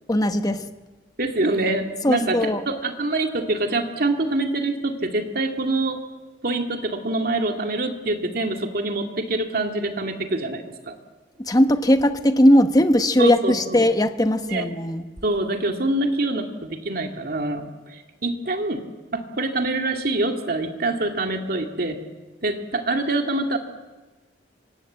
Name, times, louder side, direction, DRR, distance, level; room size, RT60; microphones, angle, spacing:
voice 1, 0.1-0.7 2.0-2.6 11.4-15.0, left 1 dB, 20° left, 8 dB, 1.1 m, -19 dB
voice 2, 1.2-6.0 6.4-10.9 13.2-13.9 14.5-14.7 15.2-18.8 19.1-22.0 22.4-23.6, right 2 dB, 55° right, 4 dB, 2.3 m, -25 dB
25.0 x 18.5 x 8.1 m, 1.2 s
head